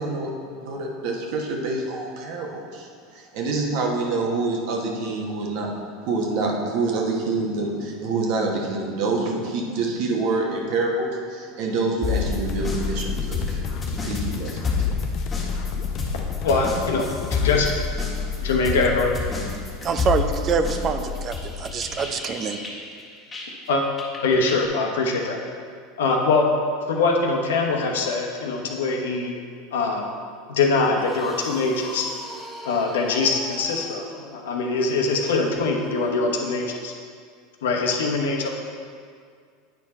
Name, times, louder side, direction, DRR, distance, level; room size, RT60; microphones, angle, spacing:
voice 1, 0.0-5.7 6.0-14.9, right 3 dB, 65° right, 0 dB, 1.3 m, -27 dB
sound 1, 12.0-23.7 24.0-24.7, left 5 dB, 25° left, 1.7 m, -28 dB
sound 2, 12.3-17.8, left 4 dB, 50° left, 0.6 m, -35 dB
voice 2, 16.4-17.7 18.4-19.1 23.7-23.8 24.2-25.4 26.0-26.5 26.9-29.3 29.7-30.1 30.5-32.1 32.6-34.1 34.3-36.9 37.6-38.5, left 3 dB, 85° left, 1 dB, 1.0 m, -23 dB
voice 3, 19.8-22.6, right 5 dB, 40° right, 8 dB, 0.6 m, -25 dB
sound 3, 31.0-36.5, left 1 dB, 5° left, 1.1 m, -40 dB
9.1 x 4.6 x 4.3 m, 2.1 s
hypercardioid pair, 100°, 0 cm